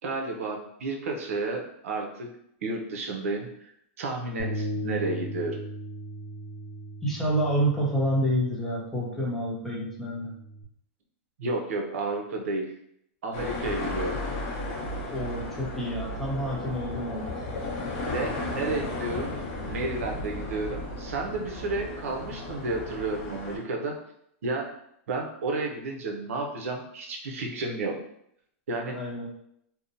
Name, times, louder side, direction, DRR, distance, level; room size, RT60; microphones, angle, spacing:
voice 1, 0.0-2.3 2.6-3.7 4.0-5.6 11.4-12.7 13.2-14.2 18.0-24.0 24.4-24.7 25.1-28.0 28.7-29.0, right 3 dB, 85° right, 1 dB, 0.6 m, -31 dB
Bass guitar, 4.4-10.6, equal, 90° left, 0.5 m, -38 dB
voice 2, 7.0-10.3 15.1-17.4 28.9-29.3, equal, 5° left, -5 dB, 0.6 m, -28 dB
sound 1, 13.3-23.6, left 2 dB, 45° left, 0.7 m, -34 dB
2.7 x 2.1 x 2.6 m, 0.74 s
supercardioid pair, 150°, 7 cm